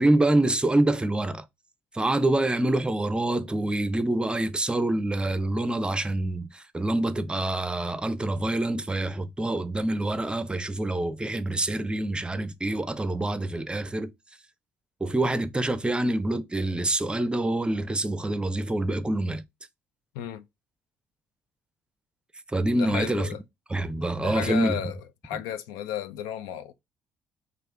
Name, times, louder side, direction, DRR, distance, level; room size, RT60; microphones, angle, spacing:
voice 1, 0.0-1.4 1.9-14.1 15.0-19.4 22.5-23.3 23.7-24.8, right 1 dB, 15° right, 0.5 m, -26 dB
voice 2, 22.8-23.4 24.2-25.0 25.2-26.7, left 10 dB, 80° left, 0.4 m, -33 dB
3.4 x 2.5 x 3.2 m
hypercardioid pair, 55°, 6 cm